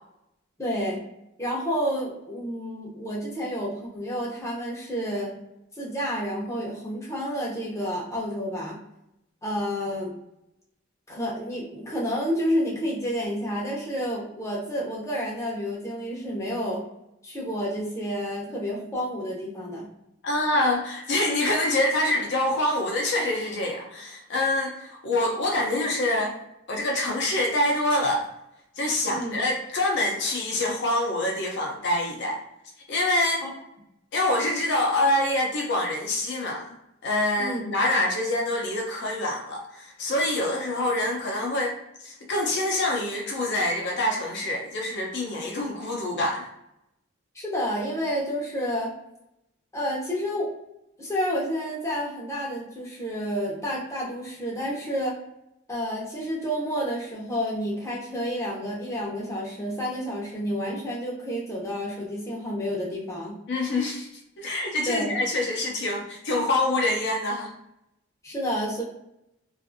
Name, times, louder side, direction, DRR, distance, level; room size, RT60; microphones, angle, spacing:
voice 1, 0.6-1.0 1.4-5.3 5.8-8.8 9.4-10.1 11.1-16.8 17.2-19.9 29.1-29.4 33.4-33.5 37.4-37.6 47.3-48.9 49.7-50.5 51.0-55.2 55.7-63.4 64.9-65.2 68.2-68.8, equal, 15° left, -4 dB, 0.6 m, -30 dB
voice 2, 20.2-26.4 26.7-28.3 28.8-32.4 32.9-33.4 34.1-36.7 37.0-41.7 42.0-46.5 63.5-64.1 64.4-67.5, left 1 dB, 60° left, 0 dB, 0.5 m, -26 dB
2.5 x 2.4 x 2.5 m, 0.84 s
head